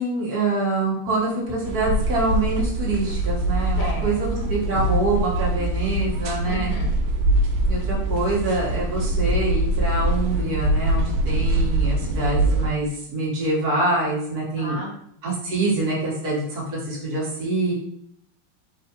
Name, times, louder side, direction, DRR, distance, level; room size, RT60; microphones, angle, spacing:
voice 1, 0.0-6.7 7.7-14.8 15.2-17.7, right 2 dB, 50° right, -5 dB, 1.7 m, -25 dB
sound 1, 1.7-12.7, right 1 dB, 90° right, 1.5 m, -23 dB
voice 2, 3.8-4.5 6.4-6.9 14.6-14.9, left 2 dB, 60° left, 0 dB, 0.9 m, -33 dB
4.8 x 3.7 x 2.8 m, 0.71 s
omnidirectional pair, 2.3 m